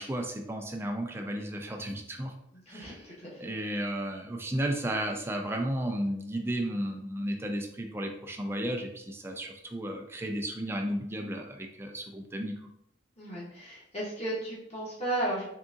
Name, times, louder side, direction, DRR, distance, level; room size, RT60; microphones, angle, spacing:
voice 1, 0.0-2.3 2.7-3.0 3.4-12.5, right 1 dB, 15° right, 3 dB, 0.4 m, -33 dB
voice 2, 2.5-3.4 13.2-15.5, right 1 dB, 35° left, -6 dB, 1.1 m, -34 dB
3.8 x 3.6 x 2.4 m, 0.76 s
head